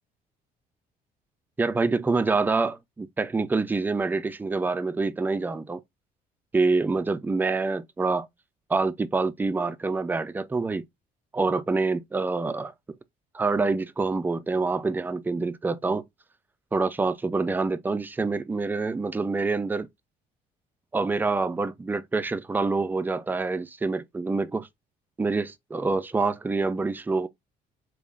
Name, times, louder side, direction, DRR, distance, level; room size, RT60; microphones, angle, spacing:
voice 1, 1.6-5.8 6.5-8.3 8.7-10.9 11.3-12.7 13.3-16.0 16.7-19.9 20.9-24.7 25.2-27.3, right 3 dB, 10° right, 0.4 m, -26 dB
3.6 x 2.4 x 3.5 m
cardioid pair, 110°, 17 cm